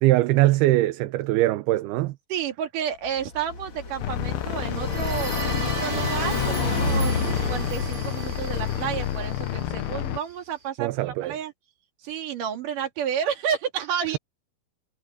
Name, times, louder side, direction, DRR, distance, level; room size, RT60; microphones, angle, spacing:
voice 1, 0.0-2.2 10.8-11.4, right 16 dB, 80° right, 2.7 m, -21 dB
voice 2, 2.3-11.5 12.0-14.2, right 8 dB, 55° right, 3.7 m, -31 dB
Car passing by, 3.0-8.6, left 3 dB, 35° left, 2.7 m, -31 dB
sound 1, 4.0-10.2, left 12 dB, 75° left, 2.9 m, -29 dB
sound 2, 4.6-10.3, right 2 dB, 25° right, 1.6 m, -34 dB
omnidirectional pair, 4.7 m